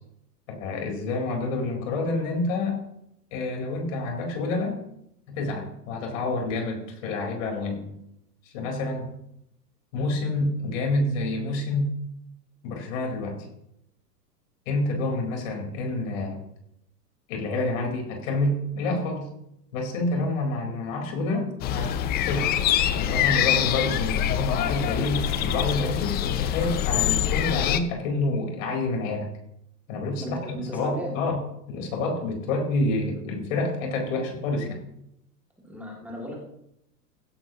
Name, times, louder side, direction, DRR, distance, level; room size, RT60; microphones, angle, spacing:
voice 1, 0.5-2.8 3.3-4.8 5.3-7.9 8.4-9.1 9.9-11.9 12.6-13.4 14.7-16.4 17.3-19.3 19.7-22.5 22.9-29.3 29.9-31.4 31.7-34.8, left 2 dB, 50° left, 2 dB, 4.4 m, -28 dB
sound 1, 21.6-27.8, left 11 dB, 20° left, 0.6 m, -25 dB
voice 2, 30.2-31.2 35.6-36.4, equal, 5° right, -3 dB, 2.4 m, -35 dB
16.5 x 11.0 x 3.0 m, 0.80 s
hypercardioid pair, 110°, 48 cm